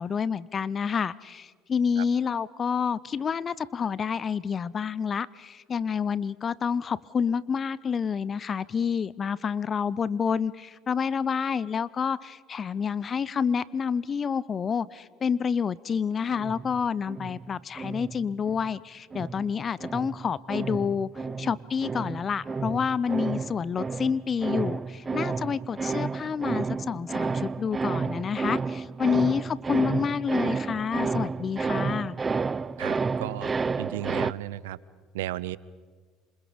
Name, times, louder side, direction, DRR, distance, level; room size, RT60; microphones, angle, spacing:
voice 1, 0.0-21.1 21.4-32.2, left 6 dB, 35° left, 21 dB, 0.6 m, -28 dB
sound 1, 16.3-18.7 19.1-34.3, right 4 dB, 25° right, 0.6 m, -31 dB
voice 2, 32.8-33.5 33.8-34.8 35.1-35.6, right 15 dB, 85° right, 20 dB, 0.6 m, -34 dB
27.0 x 26.5 x 5.1 m, 1.5 s
hypercardioid pair, 75°, 0 cm